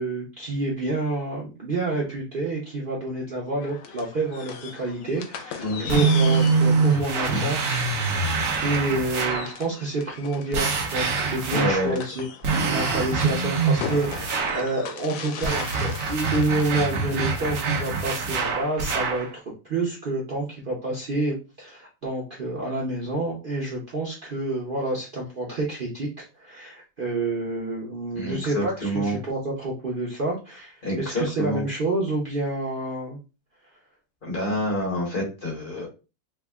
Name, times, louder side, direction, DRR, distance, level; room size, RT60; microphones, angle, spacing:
voice 1, 0.0-7.6 8.6-12.3 12.6-19.3 19.6-33.2, right 2 dB, 80° right, -4 dB, 0.4 m, -28 dB
sound 1, 3.6-17.4, left 7 dB, 85° left, 1.3 m, -39 dB
sound 2, 5.9-9.5 10.5-11.9 12.4-14.7 15.4-19.3, right 4 dB, 60° right, 1.1 m, -24 dB
voice 2, 6.9-7.9 11.5-11.9 13.0-13.2 28.1-29.2 30.8-31.6 34.2-35.9, left 1 dB, 30° left, -3 dB, 1.2 m, -28 dB
3.4 x 2.1 x 3.4 m, 0.31 s
omnidirectional pair, 2.0 m